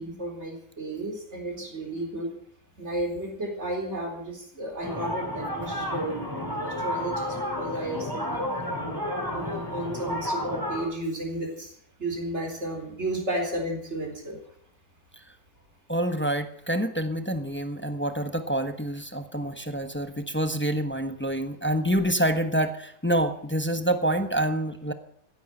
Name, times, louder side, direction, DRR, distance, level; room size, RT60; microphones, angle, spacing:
voice 1, 0.0-2.3 2.8-8.4 9.3-14.4, right 1 dB, 40° right, 2 dB, 4.4 m, -33 dB
sound 1, 4.8-10.8, left 1 dB, 10° right, 5.1 m, -31 dB
voice 2, 15.9-24.9, right 1 dB, 10° left, 8 dB, 0.8 m, -27 dB
16.0 x 10.5 x 7.9 m, 0.66 s
omnidirectional pair, 1.7 m